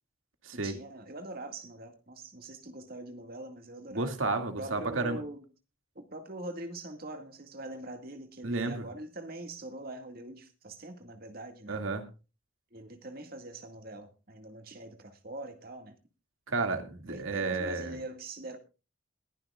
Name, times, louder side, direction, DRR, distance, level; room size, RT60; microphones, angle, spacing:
voice 1, 0.5-4.1 4.6-5.5 6.0-11.8 12.7-16.0 17.1-18.6, right 2 dB, 50° right, 2.0 m, -43 dB
voice 2, 3.9-5.2 8.4-8.9 11.7-12.0 16.5-17.9, right 3 dB, 85° right, 2.2 m, -32 dB
22.0 x 11.0 x 2.4 m
head